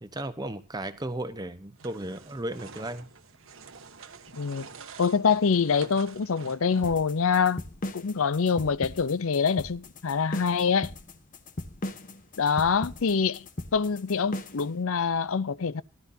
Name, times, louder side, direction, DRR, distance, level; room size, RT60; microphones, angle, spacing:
voice 1, 0.0-3.1, right 1 dB, 20° right, 1.0 m, -35 dB
sound 1, 1.8-7.2, right 5 dB, 65° right, 1.2 m, -48 dB
voice 2, 4.3-4.7 5.0-7.6 7.9-10.9 12.4-13.5 13.7-15.8, left 5 dB, 70° left, 0.6 m, -25 dB
sound 2, 6.8-14.7, left 1 dB, 35° left, 1.0 m, -37 dB
18.0 x 12.0 x 2.7 m
head